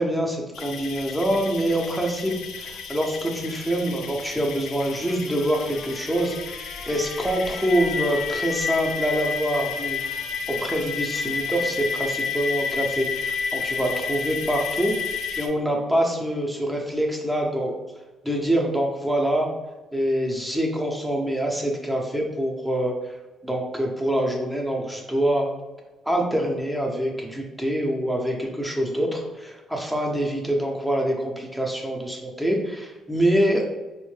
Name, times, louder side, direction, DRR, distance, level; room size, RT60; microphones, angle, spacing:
voice 1, 0.0-17.7 18.2-19.5 19.9-23.1 23.4-25.5 26.1-33.6, right 1 dB, ahead, 0 dB, 0.5 m, -25 dB
sound 1, 0.5-15.5, left 6 dB, 75° left, 0.4 m, -31 dB
Trumpet, 4.9-11.9, left 2 dB, 35° left, 0.6 m, -46 dB
4.3 x 2.1 x 3.1 m, 1.1 s
cardioid pair, 155°, 0 cm